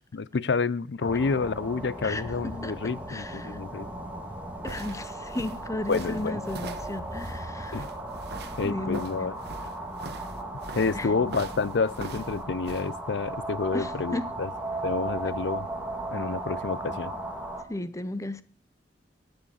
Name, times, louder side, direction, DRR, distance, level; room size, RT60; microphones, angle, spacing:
voice 1, 0.1-3.9 5.9-6.4 7.7-7.9 8.6-9.3 10.7-14.5 14.8-15.7 16.1-17.1, left 4 dB, 80° left, 0.5 m, -29 dB
sound 1, 1.0-17.6, right 1 dB, 10° right, 1.9 m, -36 dB
voice 2, 2.6-3.7 4.6-7.8 8.6-9.3 10.9-11.1 13.7-14.3 17.7-18.4, left 1 dB, 20° left, 0.7 m, -34 dB
sound 2, 4.2-12.9, right 3 dB, 65° right, 1.1 m, -42 dB
12.5 x 8.0 x 7.1 m
head